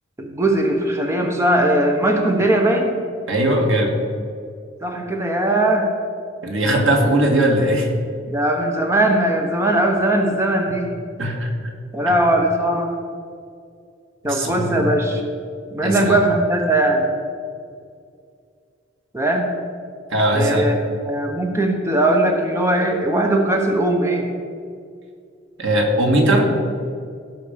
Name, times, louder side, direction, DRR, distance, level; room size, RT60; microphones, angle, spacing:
voice 1, 0.2-2.9 4.8-5.9 8.3-10.9 11.9-12.9 14.2-15.2 15.7-17.0 19.1-19.5 20.3-24.2, right 1 dB, 15° right, 2 dB, 1.1 m, -19 dB
voice 2, 3.3-3.9 6.4-7.9 11.2-11.5 14.2-14.9 15.8-16.2 20.1-20.6 25.6-26.5, right 1 dB, 85° right, 1 dB, 1.9 m, -19 dB
16.5 x 6.1 x 5.2 m, 2.2 s
head